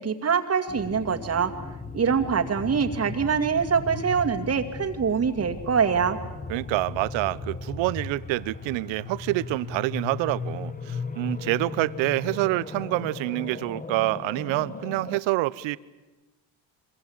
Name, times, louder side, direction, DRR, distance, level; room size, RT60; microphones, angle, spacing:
voice 1, 0.0-1.5 1.9-6.2, right 6 dB, 35° right, 5 dB, 2.3 m, -24 dB
sound 1, 0.7-15.2, left 4 dB, 20° left, 1.5 m, -37 dB
voice 2, 6.5-15.8, right 19 dB, 80° right, 18 dB, 1.0 m, -27 dB
26.0 x 23.0 x 8.8 m, 1.1 s
cardioid pair, 110°, 45 cm